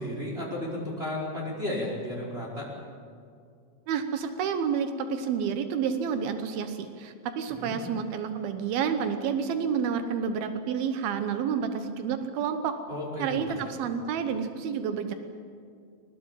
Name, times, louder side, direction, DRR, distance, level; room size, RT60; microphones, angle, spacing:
voice 1, 0.0-2.7 7.5-7.8 12.9-13.3 13.6-13.7, left 1 dB, 10° right, -3 dB, 4.7 m, -33 dB
voice 2, 3.9-12.8 13.2-15.1, right 7 dB, 90° right, 8 dB, 2.1 m, -29 dB
22.0 x 19.5 x 9.0 m, 2.3 s
omnidirectional pair, 6.0 m